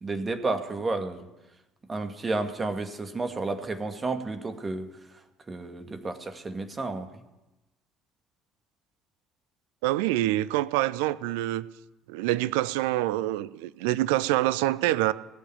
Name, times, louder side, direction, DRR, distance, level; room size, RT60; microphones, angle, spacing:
voice 1, 0.0-1.2 1.9-4.9 5.5-7.1, right 3 dB, 25° right, 2.0 m, -31 dB
voice 2, 9.8-11.6 12.1-15.1, right 16 dB, 65° right, 0.5 m, -26 dB
19.0 x 7.4 x 9.4 m
figure-of-eight pair, 55°, 0 cm